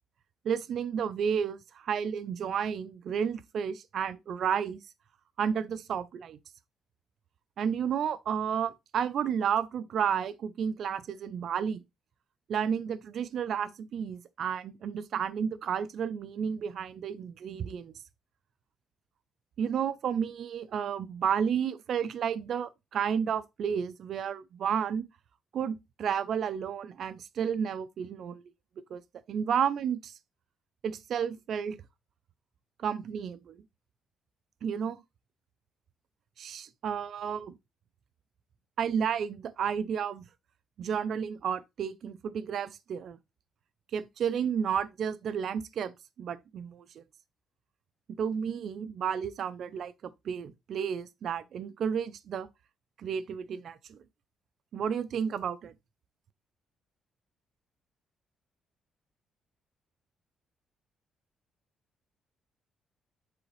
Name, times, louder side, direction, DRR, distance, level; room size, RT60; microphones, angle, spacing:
voice 1, 0.4-4.8 5.4-6.4 7.6-11.8 12.5-17.9 19.6-25.1 25.5-28.4 28.9-29.0 29.3-30.1 30.8-31.8 32.8-33.6 34.6-35.0 36.4-37.5 38.8-40.2 40.8-43.2 43.9-45.9 46.2-47.0 48.1-52.5 53.0-54.0 54.7-55.7, right 7 dB, 65° right, 0.5 m, -32 dB
7.6 x 3.9 x 3.2 m
cardioid pair, 90°, 0 cm